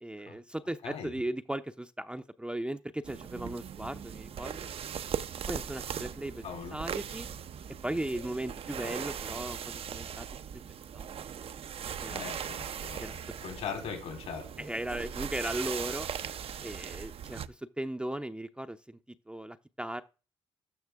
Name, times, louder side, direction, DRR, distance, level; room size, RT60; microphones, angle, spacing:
voice 1, 0.0-4.7 5.5-6.4 6.7-7.3 7.8-10.3 10.5-10.6 10.9-11.1 12.0-12.2 13.0-13.1 14.6-16.1 16.6-20.0, right 1 dB, 10° right, 7 dB, 0.6 m, -37 dB
sound 1, 3.0-17.5, right 8 dB, 55° right, 0.6 m, -39 dB
voice 2, 6.4-6.8 12.1-14.5, left 6 dB, 75° left, 4 dB, 3.8 m, -40 dB
13.0 x 6.0 x 3.5 m, 0.33 s
supercardioid pair, 65°, 11 cm